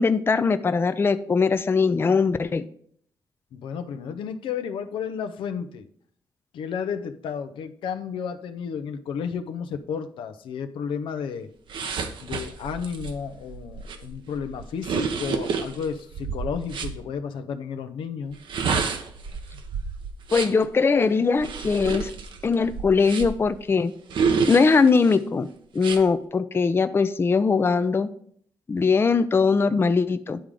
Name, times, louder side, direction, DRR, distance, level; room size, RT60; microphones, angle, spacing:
voice 1, 0.0-2.7 20.3-22.1 22.4-23.9 24.5-25.5 25.7-28.1 28.7-30.4, left 4 dB, 30° left, 11 dB, 0.4 m, -21 dB
voice 2, 3.5-5.9 6.5-11.5 12.2-18.4, left 7 dB, 85° left, 9 dB, 0.6 m, -32 dB
sound 1, 11.7-17.0 18.3-20.7 21.4-23.5 24.1-25.2 25.8-26.0, right 5 dB, 70° right, 0.9 m, -29 dB
10.0 x 3.7 x 4.8 m, 0.62 s
cardioid pair, 85°, 8 cm